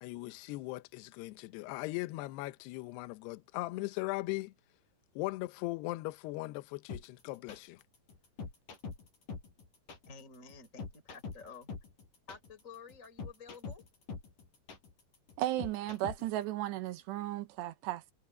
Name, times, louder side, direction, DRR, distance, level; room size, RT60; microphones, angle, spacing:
voice 1, 0.0-4.5 5.2-7.8, left 20 dB, 75° left, 2.6 m, -39 dB
sound 1, 6.9-16.4, left 4 dB, 45° left, 6.5 m, -44 dB
voice 2, 10.1-11.7 12.3-13.8, left 5 dB, 20° left, 3.6 m, -51 dB
voice 3, 15.4-18.1, right 14 dB, 75° right, 2.9 m, -35 dB
omnidirectional pair, 5.5 m